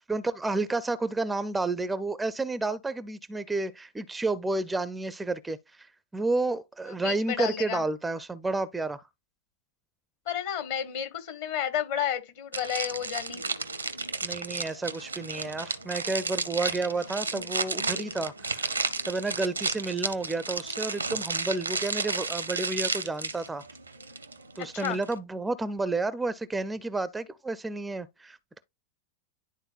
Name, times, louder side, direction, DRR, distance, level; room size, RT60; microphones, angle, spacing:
voice 1, 0.1-9.0 14.2-18.7 19.1-23.6 24.6-28.6, right 3 dB, 10° right, 0.4 m, -31 dB
voice 2, 7.0-7.8 10.2-13.4 24.7-25.0, left 10 dB, 55° left, 1.3 m, -31 dB
sound 1, 12.5-25.2, right 4 dB, 80° right, 0.7 m, -33 dB
11.0 x 3.9 x 2.4 m
figure-of-eight pair, 90°, 0 cm